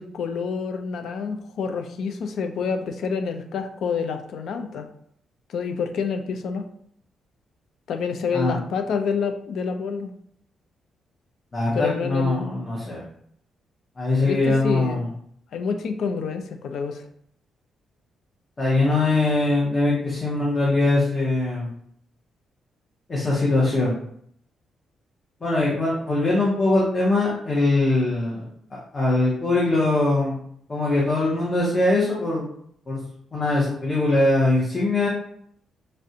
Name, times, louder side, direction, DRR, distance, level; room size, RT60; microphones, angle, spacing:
voice 1, 0.0-4.9 5.5-6.6 7.9-10.1 11.7-12.5 14.2-15.0 15.5-17.1, left 5 dB, 60° left, 7 dB, 0.3 m, -28 dB
voice 2, 11.5-13.0 14.0-15.1 18.6-21.7 23.1-24.0 25.4-28.4 28.9-30.4 30.7-32.4 32.9-33.0 33.3-35.1, left 2 dB, 25° left, -6 dB, 0.7 m, -22 dB
3.2 x 2.5 x 2.7 m, 0.67 s
cardioid pair, 165°, 0 cm